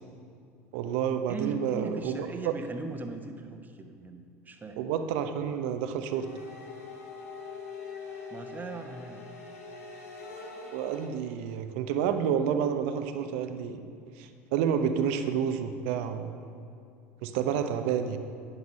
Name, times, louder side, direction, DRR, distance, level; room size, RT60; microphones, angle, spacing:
voice 1, 0.7-2.3 4.8-6.3 10.7-13.8 14.2-16.4 17.2-18.2, right 8 dB, 60° right, 8 dB, 0.8 m, -29 dB
voice 2, 1.3-4.8 8.3-9.2, right 3 dB, 25° right, 5 dB, 1.1 m, -39 dB
sound 1, 6.1-11.1, left 4 dB, 75° left, 1.4 m, -43 dB
11.0 x 9.5 x 5.4 m, 2.5 s
figure-of-eight pair, 70°, 8 cm